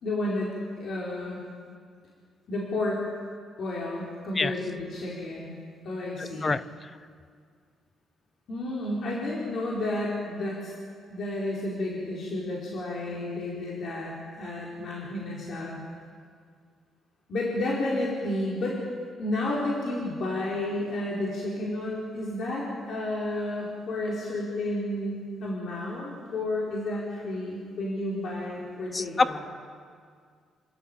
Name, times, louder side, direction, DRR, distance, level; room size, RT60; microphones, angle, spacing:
voice 1, 0.0-0.5 0.8-1.4 2.5-3.0 3.6-5.5 5.8-6.5 8.5-10.7 11.1-15.8 17.3-18.8 19.2-29.4, left 1 dB, 60° left, -5 dB, 4.7 m, -31 dB
voice 2, 28.9-29.4, left 3 dB, 30° left, 15 dB, 0.7 m, -25 dB
28.5 x 13.0 x 8.9 m, 2.1 s
cardioid pair, 90°, 0 cm